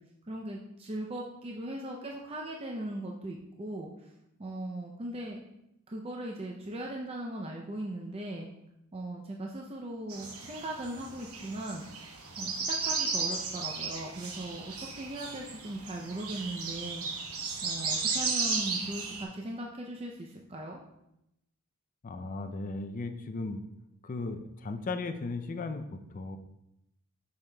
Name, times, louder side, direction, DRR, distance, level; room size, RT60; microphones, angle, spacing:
voice 1, 0.3-4.1 4.4-5.4 5.9-8.5 8.9-11.9 12.4-17.1 17.6-20.8, right 1 dB, 25° right, 0 dB, 0.5 m, -39 dB
sound 1, 10.1-19.2, right 4 dB, 80° right, 1.0 m, -35 dB
voice 2, 22.0-23.6 24.0-26.4, left 3 dB, 35° left, 8 dB, 0.4 m, -36 dB
6.9 x 6.3 x 2.2 m, 0.84 s
head